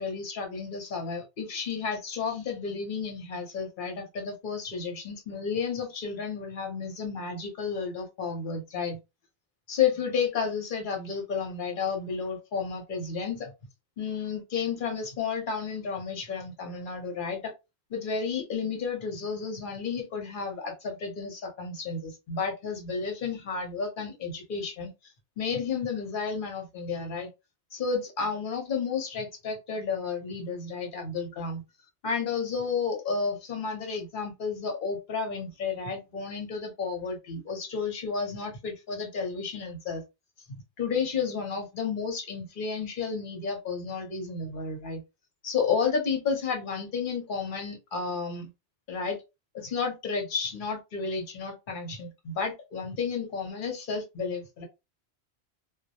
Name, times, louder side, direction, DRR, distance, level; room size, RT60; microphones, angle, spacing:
voice 1, 0.0-9.0 9.7-13.5 14.0-17.5 17.9-24.9 25.4-27.3 27.7-31.6 32.0-40.0 40.8-45.0 45.4-48.5 48.9-49.2 49.5-54.6, left 5 dB, 55° left, 0.8 m, -32 dB
2.2 x 2.0 x 2.7 m
omnidirectional pair, 1.1 m